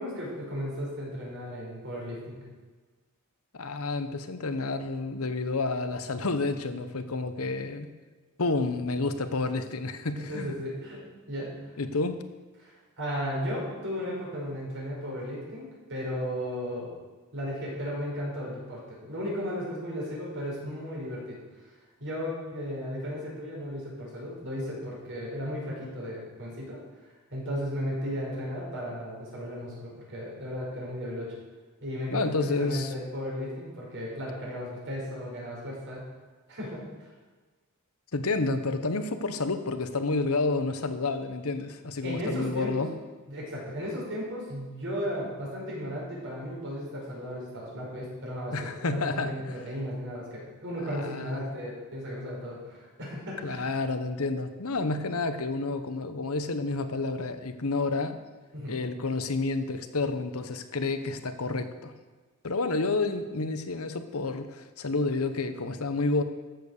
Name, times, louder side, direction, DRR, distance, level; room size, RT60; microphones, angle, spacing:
voice 1, 0.0-2.4 10.2-11.6 12.6-16.9 17.3-21.4 22.0-26.8 27.3-31.3 31.8-36.0 36.5-36.8 42.0-42.8 43.3-53.6 58.5-58.8, equal, 60° right, -4 dB, 5.2 m, -35 dB
voice 2, 3.5-7.9 8.4-10.6 11.8-12.2 32.1-32.9 38.1-42.9 48.5-49.6 50.8-51.4 53.4-58.2 58.7-61.9 62.4-66.2, left 3 dB, 75° left, 10 dB, 1.0 m, -30 dB
13.5 x 8.0 x 6.6 m, 1.3 s
head